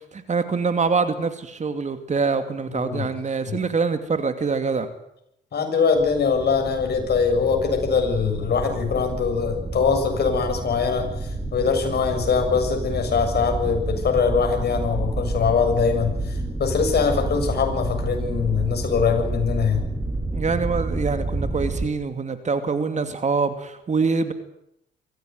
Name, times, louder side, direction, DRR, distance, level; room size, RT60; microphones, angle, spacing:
voice 1, 0.0-4.9 20.3-24.3, right 4 dB, 35° right, 9 dB, 2.6 m, -24 dB
voice 2, 2.7-3.1 3.5-3.6 5.5-19.9, left 6 dB, 55° left, 4 dB, 7.1 m, -22 dB
sound 1, 5.9-21.9, right 2 dB, 10° right, 6.1 m, -29 dB
23.5 x 16.0 x 9.6 m, 0.79 s
cardioid pair, 90°, 20 cm